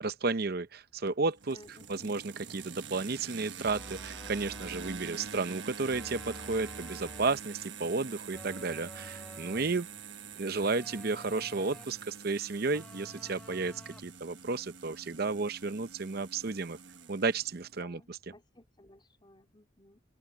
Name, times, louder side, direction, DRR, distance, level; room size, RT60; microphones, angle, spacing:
voice 1, 0.0-1.6 1.9-9.9 10.4-16.8 17.1-18.2, right 3 dB, 50° right, 0.7 m, -33 dB
sound 1, 1.1-17.8, right 6 dB, 70° right, 1.3 m, -46 dB
voice 2, 1.5-2.1 17.8-20.0, left 1 dB, 25° left, 4.0 m, -56 dB
sound 2, 3.6-5.1 5.9-7.4 8.3-9.8 10.6-12.1 12.7-14.2, equal, 5° left, 1.2 m, -50 dB
open air
head